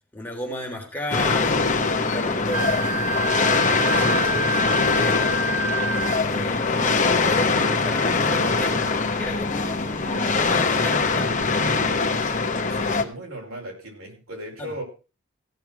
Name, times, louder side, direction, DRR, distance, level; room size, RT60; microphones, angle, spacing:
voice 1, 0.1-5.4 6.3-11.5 14.6-14.7, equal, 10° left, -1 dB, 3.5 m, -34 dB
sound 1, 1.1-13.0, left 4 dB, 35° left, 1.2 m, -22 dB
Wind instrument woodwind instrument, 2.5-6.2, right 2 dB, 15° right, 4.1 m, -28 dB
voice 2, 12.7-14.8, right 1 dB, 75° right, 0 dB, 5.4 m, -37 dB
16.5 x 7.0 x 6.0 m, 0.33 s
head